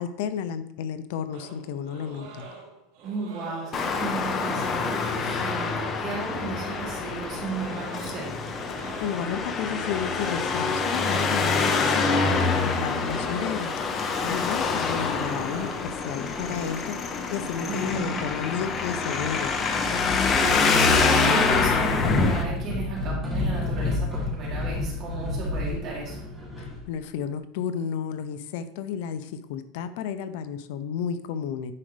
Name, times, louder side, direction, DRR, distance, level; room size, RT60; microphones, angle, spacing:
voice 1, 0.0-2.5 8.8-19.6 26.6-31.7, left 8 dB, 65° left, 11 dB, 0.6 m, -32 dB
sound 1, 1.3-16.9, right 4 dB, 75° right, 2.9 m, -45 dB
voice 2, 3.0-8.5 17.7-18.2 20.0-26.2, right 4 dB, 40° right, -5 dB, 3.3 m, -34 dB
Traffic noise roadway noise, 3.7-22.4, left 4 dB, 25° left, 0.9 m, -26 dB
sound 2, 19.8-20.5 20.9-26.9, left 2 dB, ahead, 2.4 m, -31 dB
9.6 x 5.3 x 3.3 m, 0.75 s
supercardioid pair, 160°, 0 cm